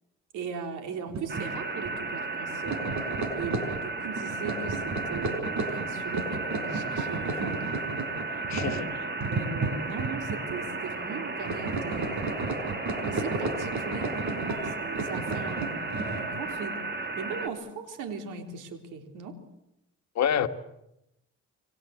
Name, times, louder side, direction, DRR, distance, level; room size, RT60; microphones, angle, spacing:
voice 1, 0.3-7.8 8.3-12.3 13.0-19.4, right 5 dB, 90° right, 3.7 m, -39 dB
sound 1, 1.1-1.5 1.8-2.0 2.5-10.6 10.8-11.2 11.4-16.5, right 3 dB, 70° right, 5.3 m, -33 dB
sound 2, 1.3-17.5, right 3 dB, 35° right, 3.3 m, -34 dB
voice 2, 8.5-8.9 20.1-20.5, left 8 dB, 65° left, 1.6 m, -26 dB
28.0 x 23.5 x 8.1 m
cardioid pair, 90°, 30 cm